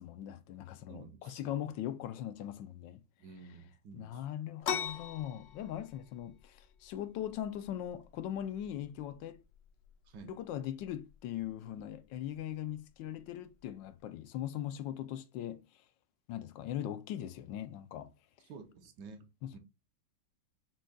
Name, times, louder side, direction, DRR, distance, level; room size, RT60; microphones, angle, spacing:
voice 1, 0.0-3.0 3.9-9.4 10.2-15.7 16.3-18.1 19.4-19.6, left 11 dB, 85° left, 1.3 m, -40 dB
voice 2, 0.9-1.5 3.2-4.2 10.1-10.3 18.5-19.3 19.5-19.6, right 5 dB, 75° right, 1.3 m, -51 dB
sound 1, 4.6-14.0, left 8 dB, 70° left, 0.7 m, -45 dB
6.1 x 2.2 x 3.8 m
omnidirectional pair, 2.0 m